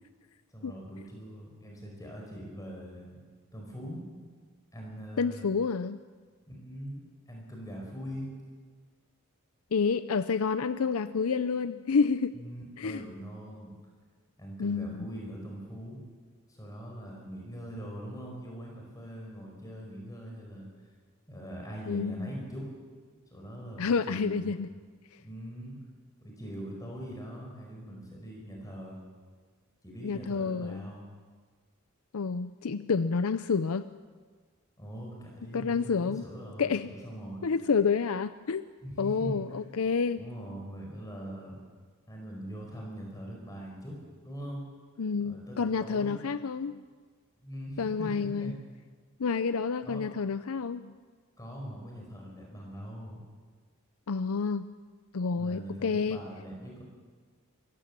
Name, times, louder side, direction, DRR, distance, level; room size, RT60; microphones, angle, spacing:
voice 1, 0.5-3.2 3.5-4.0 4.7-5.5 6.5-8.3 12.3-13.8 14.4-16.0 16.5-20.7 21.3-22.7 23.3-24.6 25.2-25.8 26.2-29.0 29.8-31.0 34.8-37.5 38.8-39.4 40.2-41.6 42.1-44.0 44.2-44.6 45.2-46.3 47.4-48.6 49.8-50.0 51.4-53.2 55.4-56.8, equal, 15° left, -1 dB, 5.2 m, -42 dB
voice 2, 5.2-6.0 9.7-12.4 12.8-13.0 14.6-15.1 21.9-22.3 23.8-24.7 30.0-30.9 32.1-33.9 35.5-36.2 36.6-36.9 37.4-38.6 39.0-40.2 45.0-46.8 47.8-48.6 49.2-50.9 54.1-54.7 55.1-56.2, left 5 dB, 75° left, 13 dB, 0.6 m, -29 dB
24.0 x 15.5 x 7.5 m, 1.5 s
head